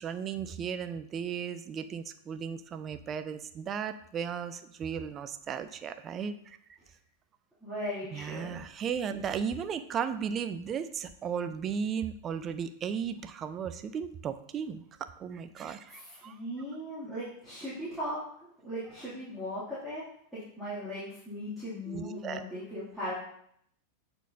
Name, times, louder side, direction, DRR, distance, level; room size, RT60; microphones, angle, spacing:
voice 1, 0.0-6.6 8.1-16.4 21.9-22.4, right 7 dB, 25° right, 10 dB, 0.4 m, -35 dB
voice 2, 7.6-8.6 15.9-18.2 18.6-20.0 20.3-23.1, equal, 5° right, -13 dB, 2.5 m, -38 dB
8.0 x 4.3 x 2.7 m, 0.69 s
figure-of-eight pair, 90°, 0 cm